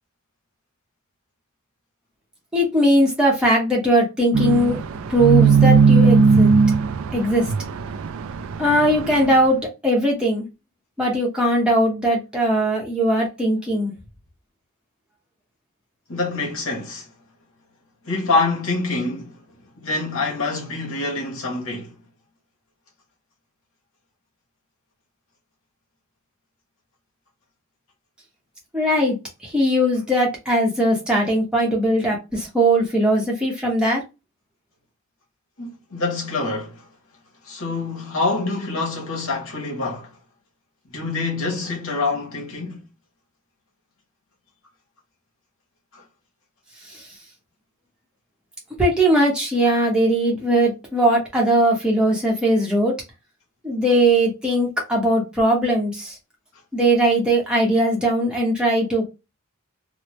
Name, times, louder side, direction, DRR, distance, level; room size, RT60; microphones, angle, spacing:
voice 1, 2.5-4.8 5.1-6.5 7.1-7.5 8.6-10.4 11.0-13.9 28.7-29.2 29.4-34.0 46.9-47.0 48.8-52.9 53.6-56.2 56.7-59.1, right 1 dB, 5° right, 0.8 m, -19 dB
sound 1, 4.3-9.2, right 5 dB, 65° right, 0.3 m, -17 dB
voice 2, 16.1-17.1 18.0-19.4 19.8-21.9 35.6-36.8 37.4-40.1 40.9-42.8 45.9-46.0, left 3 dB, 70° left, 1.0 m, -26 dB
3.1 x 2.0 x 3.0 m
head